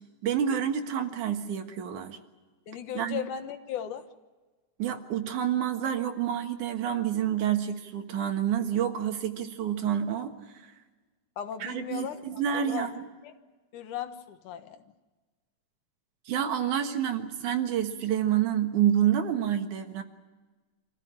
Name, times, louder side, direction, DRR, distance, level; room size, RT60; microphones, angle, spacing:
voice 1, 0.2-2.2 2.9-3.2 4.8-10.4 10.6-10.7 11.6-13.1 16.3-20.0, right 9 dB, 85° right, 6 dB, 3.0 m, -28 dB
voice 2, 2.7-4.1 11.4-12.9 13.2-13.3 13.7-14.9, left 9 dB, 85° left, 8 dB, 2.9 m, -37 dB
26.0 x 15.0 x 10.0 m, 1.3 s
omnidirectional pair, 3.4 m